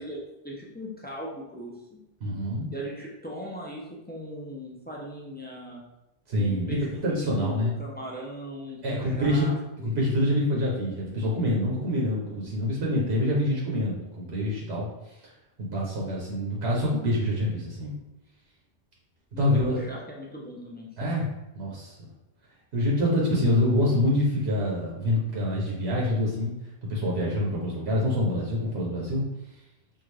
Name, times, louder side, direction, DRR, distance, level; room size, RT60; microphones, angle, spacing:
voice 1, 0.0-2.0 2.7-5.8 6.4-9.5 9.8-9.9 19.3-21.1, equal, 15° left, -4 dB, 0.3 m, -39 dB
voice 2, 2.2-2.7 6.3-6.7 7.0-7.8 8.8-9.5 9.8-14.9 15.6-17.9 19.4-19.8 21.0-21.2 21.5-21.9 22.7-26.5 26.9-29.3, left 1 dB, 75° right, -4 dB, 1.1 m, -26 dB
3.7 x 2.4 x 3.2 m, 0.91 s
omnidirectional pair, 1.1 m